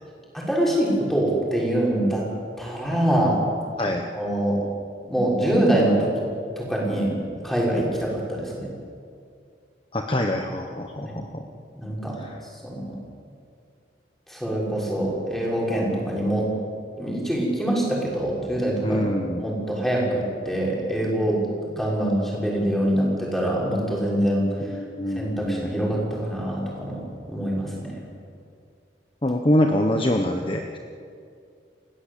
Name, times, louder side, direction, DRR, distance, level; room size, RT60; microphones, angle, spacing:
voice 1, 0.3-2.2 2.6-3.4 4.1-4.6 5.0-6.1 6.6-8.7 11.0-11.1 11.7-12.2 12.6-13.0 14.3-16.5 17.0-19.1 19.4-21.4 21.7-24.5 25.2-27.0 27.3-28.0, right 1 dB, ahead, -4 dB, 6.4 m, -24 dB
voice 2, 9.9-11.5 12.2-12.4 18.8-19.4 24.6-25.9 29.2-30.8, left 1 dB, 30° left, 3 dB, 1.2 m, -25 dB
29.5 x 17.0 x 8.5 m, 2.4 s
head